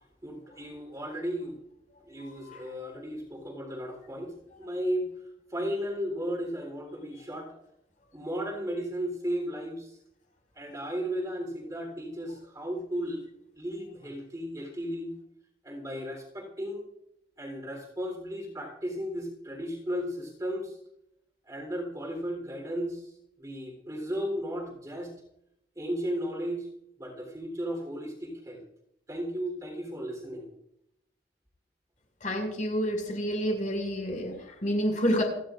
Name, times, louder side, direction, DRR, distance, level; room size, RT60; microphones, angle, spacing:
voice 1, 0.2-1.6 2.0-5.1 5.5-7.5 8.1-10.0 10.6-13.2 13.6-15.1 15.6-16.8 17.4-20.8 21.5-23.1 23.4-25.1 25.8-26.7 27.0-28.6 29.1-30.5, equal, 20° right, 2 dB, 3.6 m, -35 dB
voice 2, 2.2-2.6 32.2-35.2, equal, 45° left, 1 dB, 5.5 m, -29 dB
29.5 x 11.5 x 2.5 m, 0.79 s
head